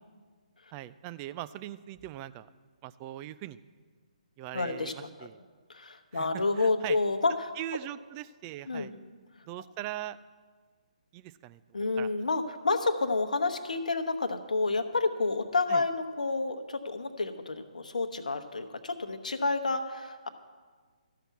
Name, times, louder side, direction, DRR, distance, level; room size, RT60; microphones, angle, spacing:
voice 1, 0.7-2.5 2.8-3.6 4.4-5.4 6.1-7.0 7.6-8.9 9.5-10.2 11.1-11.6 12.0-12.1 15.7-15.8, right 13 dB, 25° right, 14 dB, 0.3 m, -40 dB
voice 2, 4.5-5.3 5.7-7.5 8.7-8.9 11.7-20.3, left 3 dB, 70° left, 7 dB, 1.0 m, -29 dB
13.5 x 5.9 x 8.2 m, 1.5 s
figure-of-eight pair, 140°, 4 cm